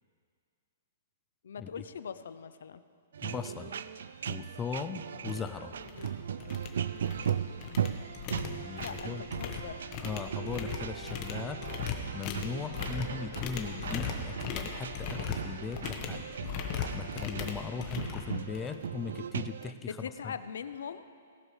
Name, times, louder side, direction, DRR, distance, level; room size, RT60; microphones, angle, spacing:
voice 1, 1.4-2.8 8.8-10.0 19.8-21.1, left 7 dB, 75° left, 13 dB, 0.5 m, -41 dB
sound 1, 3.1-19.7, right 8 dB, 70° right, 0.4 m, -38 dB
voice 2, 3.2-3.8 4.3-5.7 8.3-9.2 10.0-16.2 16.9-20.0 20.2-20.3, left 6 dB, 10° left, 8 dB, 0.4 m, -39 dB
sound 2, 4.8-4.9 5.3-5.5 5.8-6.1 6.4-7.3 7.6-18.8, left 6 dB, 25° left, 1.0 m, -38 dB
18.0 x 12.0 x 3.2 m, 2.2 s
hypercardioid pair, 170°, 0 cm